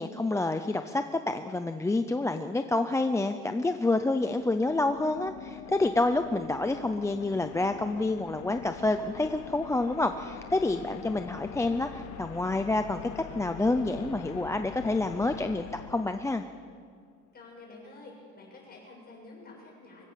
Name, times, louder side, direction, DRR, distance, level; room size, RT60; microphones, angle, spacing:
voice 1, 0.0-16.4, left 2 dB, 10° left, 7 dB, 0.5 m, -28 dB
sound 1, 3.7-16.8, left 9 dB, 60° left, 1.1 m, -44 dB
voice 2, 17.3-20.0, left 2 dB, 30° left, -2 dB, 7.1 m, -49 dB
25.0 x 16.0 x 7.5 m, 2.1 s
cardioid pair, 170°, 32 cm